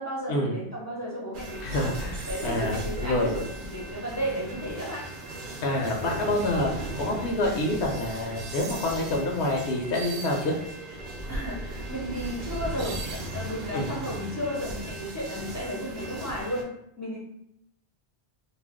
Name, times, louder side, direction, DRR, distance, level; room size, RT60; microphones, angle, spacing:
voice 1, 0.0-1.9 2.3-5.0 11.3-16.7 17.0-17.2, equal, 25° left, -5 dB, 0.4 m, -34 dB
sound 1, 1.3-16.6, right 1 dB, 60° right, 0.6 m, -37 dB
voice 2, 1.6-3.3 5.6-10.6 13.7-13.9, left 1 dB, 80° left, 0 dB, 0.8 m, -27 dB
2.4 x 2.1 x 3.4 m, 0.77 s
omnidirectional pair, 1.1 m